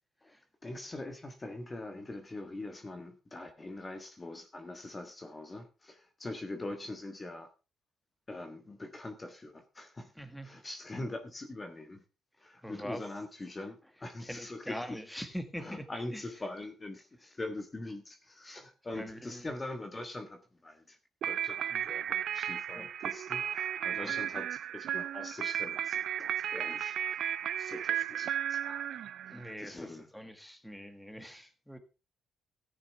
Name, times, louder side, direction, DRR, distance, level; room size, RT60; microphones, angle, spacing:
voice 1, 0.6-7.5 8.3-10.1 10.4-12.0 12.4-15.0 15.6-21.0 21.2-29.0 29.3-30.1, left 2 dB, 25° left, 1.4 m, -43 dB
voice 2, 10.2-10.5 12.6-13.1 14.2-15.8 16.1-16.2 18.9-19.5 21.7-21.8 22.7-22.9 24.0-24.1 29.3-31.8, equal, 5° left, 1.7 m, -43 dB
sound 1, 21.2-29.5, right 10 dB, 70° right, 0.5 m, -34 dB
14.0 x 9.9 x 3.5 m
cardioid pair, 90°, 0 cm